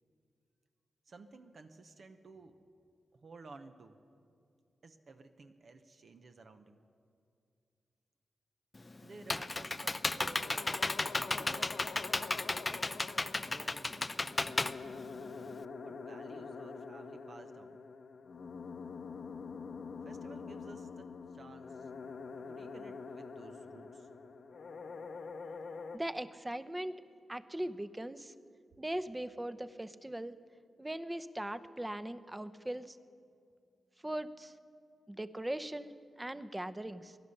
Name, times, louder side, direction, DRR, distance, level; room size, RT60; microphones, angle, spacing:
voice 1, 1.1-2.6 3.1-4.0 4.8-6.8 9.0-10.8 11.2-11.8 13.4-14.7 15.8-17.8 20.0-21.9 22.4-24.1, right 3 dB, 60° right, 7 dB, 0.9 m, -54 dB
Computer keyboard, 8.7-15.6, left 2 dB, 30° left, 0.5 m, -34 dB
sound 1, 10.2-26.0, left 4 dB, 70° left, 0.8 m, -46 dB
voice 2, 25.9-27.0 27.3-28.3 28.8-30.4 30.8-33.0 34.0-34.5 35.1-37.2, right 1 dB, 15° right, 12 dB, 0.7 m, -40 dB
17.0 x 11.5 x 6.6 m, 2.3 s
cardioid pair, 50°, 0 cm